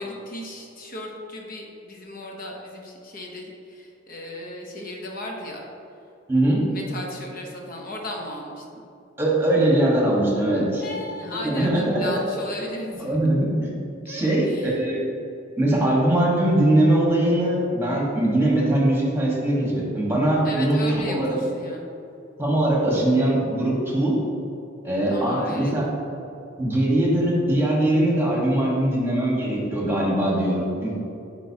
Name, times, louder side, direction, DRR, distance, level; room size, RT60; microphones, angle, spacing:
voice 1, 0.0-5.6 6.7-8.8 10.8-13.1 14.0-14.8 20.4-21.8 25.1-25.7, left 1 dB, 50° left, 0 dB, 0.9 m, -35 dB
voice 2, 6.3-6.6 9.2-10.8 11.2-12.0 13.0-13.7 14.1-15.0 15.6-20.8 21.1-21.4 22.4-24.2 24.8-25.8 26.6-30.9, right 1 dB, 10° right, -4 dB, 1.4 m, -21 dB
9.0 x 4.5 x 2.8 m, 2.8 s
head